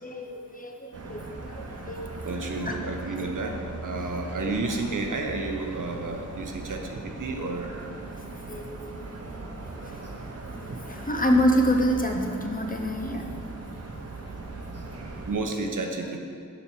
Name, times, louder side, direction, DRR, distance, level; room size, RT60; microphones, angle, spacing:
voice 1, 0.0-2.3 2.7-2.8 3.4-3.5 8.5-9.1 9.5-9.6 10.6-13.2, equal, 25° left, 2 dB, 0.8 m, -27 dB
sound 1, 0.9-15.4, right 2 dB, 50° right, 0.9 m, -39 dB
voice 2, 2.2-3.5 3.8-7.7 10.7-10.8 15.2-16.2, right 3 dB, 75° right, 3 dB, 1.0 m, -31 dB
7.1 x 5.2 x 6.1 m, 2.3 s
wide cardioid pair, 105°, 32 cm